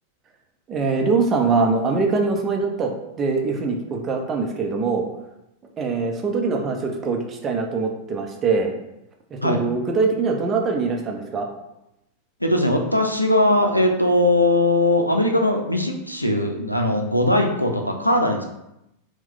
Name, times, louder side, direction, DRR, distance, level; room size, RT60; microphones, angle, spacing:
voice 1, 0.7-5.1 5.8-8.8 9.3-11.5, right 4 dB, 25° right, 2 dB, 0.7 m, -23 dB
voice 2, 12.4-18.4, left 1 dB, 90° left, 3 dB, 0.5 m, -20 dB
4.3 x 2.3 x 3.8 m, 0.85 s
figure-of-eight pair, 90°, 0 cm